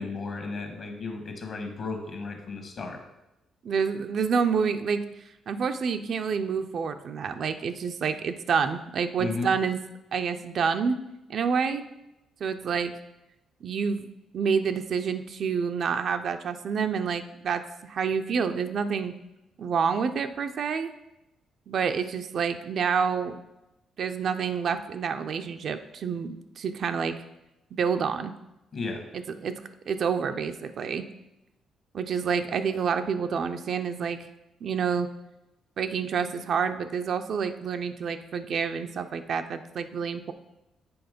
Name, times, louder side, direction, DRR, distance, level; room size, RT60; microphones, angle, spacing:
voice 1, 0.0-3.0 9.2-9.5 28.7-29.0, left 3 dB, 50° left, 4 dB, 1.4 m, -34 dB
voice 2, 3.6-5.0 5.5-9.8 10.1-11.0 11.3-11.8 12.4-12.9 13.6-14.1 14.3-19.1 19.6-20.9 21.7-23.4 24.0-27.1 27.7-28.3 29.1-29.5 29.9-31.0 31.9-34.2 34.6-35.1 35.8-40.3, right 6 dB, 60° right, 8 dB, 0.4 m, -28 dB
7.0 x 3.6 x 5.1 m, 0.93 s
cardioid pair, 90°, 0 cm